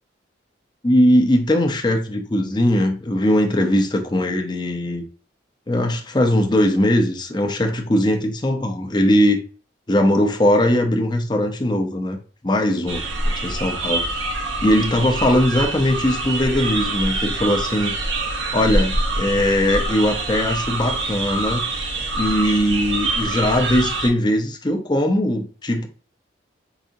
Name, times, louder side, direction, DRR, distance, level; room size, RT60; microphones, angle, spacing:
voice 1, 0.8-5.0 5.7-9.4 9.9-12.2 12.4-13.0 13.4-14.0 14.6-17.9 18.5-21.7 22.1-25.9, left 1 dB, 25° left, 0.6 m, -20 dB
sound 1, 12.9-24.1, right 2 dB, 90° right, 1.0 m, -25 dB
4.8 x 2.7 x 2.6 m
head